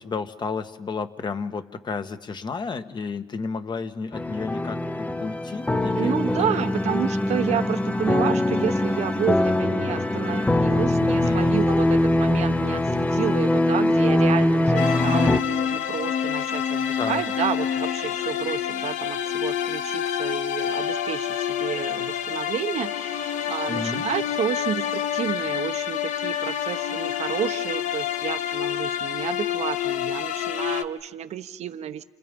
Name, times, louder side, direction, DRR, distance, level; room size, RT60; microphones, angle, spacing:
voice 1, 0.0-6.5 11.2-11.6 17.0-17.2 23.7-24.0, left 4 dB, 35° left, 9 dB, 1.6 m, -32 dB
sound 1, 4.1-15.4, left 1 dB, 10° left, 0.9 m, -22 dB
voice 2, 5.9-32.0, right 9 dB, 60° right, 11 dB, 1.1 m, -30 dB
sound 2, 14.8-30.8, left 9 dB, 75° left, 1.2 m, -27 dB
29.5 x 29.0 x 5.4 m, 1.3 s
cardioid pair, 95°, 13 cm